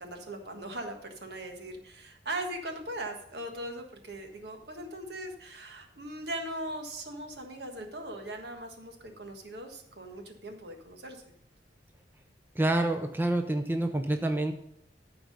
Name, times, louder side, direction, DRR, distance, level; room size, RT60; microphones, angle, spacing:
voice 1, 0.0-11.2, right 1 dB, 65° right, 4 dB, 1.5 m, -39 dB
voice 2, 12.6-14.5, right 1 dB, 10° right, 6 dB, 0.6 m, -27 dB
13.0 x 4.8 x 5.3 m, 0.73 s
head